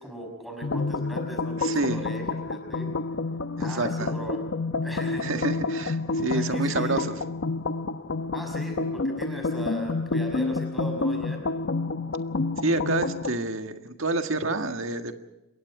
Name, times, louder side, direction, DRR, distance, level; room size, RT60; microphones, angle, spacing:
voice 1, 0.0-2.9 3.6-4.4 4.8-5.3 6.3-7.0 8.3-11.4, equal, ahead, 2 dB, 5.9 m, -38 dB
sound 1, 0.6-13.4, left 3 dB, 65° left, 0.9 m, -29 dB
voice 2, 1.6-2.0 3.6-4.1 5.2-7.1 12.6-15.1, right 2 dB, 75° right, 6 dB, 1.7 m, -28 dB
27.5 x 22.0 x 4.9 m, 0.95 s
head